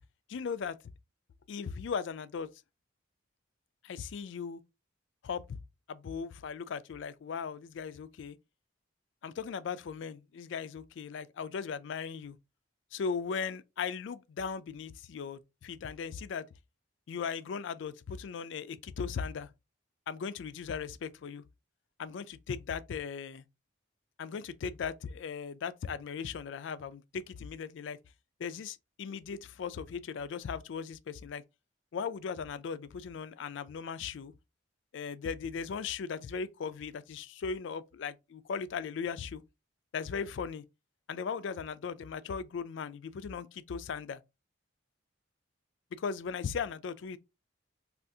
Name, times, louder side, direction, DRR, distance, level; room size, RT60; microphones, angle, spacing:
voice 1, 0.3-0.8 1.5-2.5 3.8-4.6 5.2-5.6 5.9-8.4 9.2-12.4 12.9-16.5 17.1-19.5 20.1-21.4 22.0-23.4 24.2-28.0 28.4-31.4 31.9-34.3 34.9-39.4 39.9-40.6 41.1-44.2 45.9-47.2, left 6 dB, 70° left, 0.3 m, -38 dB
2.7 x 2.4 x 3.4 m
head